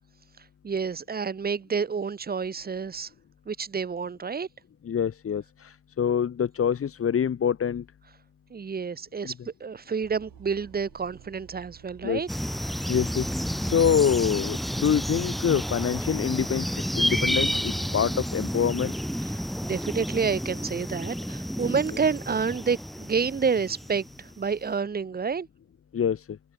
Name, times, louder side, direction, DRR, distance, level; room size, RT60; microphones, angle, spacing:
voice 1, 0.6-3.1 3.5-4.5 8.5-9.3 9.6-12.3 19.3-25.5, right 5 dB, 30° right, 1.1 m, -29 dB
voice 2, 4.8-7.8 9.2-9.3 12.0-12.2 12.9-13.3 13.6-18.9 25.9-26.2, left 8 dB, 40° left, 1.4 m, -25 dB
sound 1, 10.0-14.9, right 12 dB, 80° right, 7.0 m, -51 dB
sound 2, 12.3-24.4, equal, ahead, 1.9 m, -30 dB
cardioid pair, 115°, 33 cm